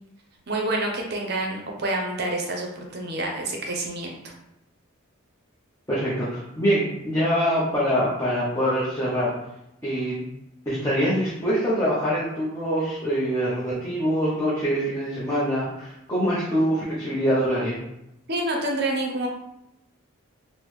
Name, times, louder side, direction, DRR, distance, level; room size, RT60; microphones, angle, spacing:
voice 1, 0.5-4.3 18.3-19.3, right 2 dB, 50° right, 1 dB, 0.6 m, -28 dB
voice 2, 5.9-9.3 9.8-10.2 10.7-17.8, equal, 15° left, -9 dB, 0.6 m, -24 dB
3.5 x 2.0 x 3.1 m, 0.85 s
head